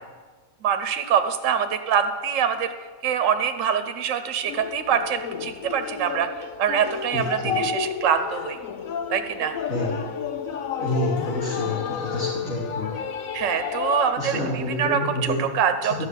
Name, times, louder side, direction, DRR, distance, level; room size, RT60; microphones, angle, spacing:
voice 1, 0.6-2.7 3.0-6.3 6.6-8.6 9.1-9.5 13.3-15.9, right 8 dB, 70° right, 8 dB, 1.1 m, -24 dB
sound 1, 4.5-14.1, left 7 dB, 90° left, 1.2 m, -31 dB
voice 2, 7.1-7.5 9.7-10.0 10.8-12.9 14.2-15.4, left 1 dB, 70° left, -9 dB, 3.6 m, -28 dB
12.5 x 6.0 x 9.0 m, 1.4 s
omnidirectional pair, 1.4 m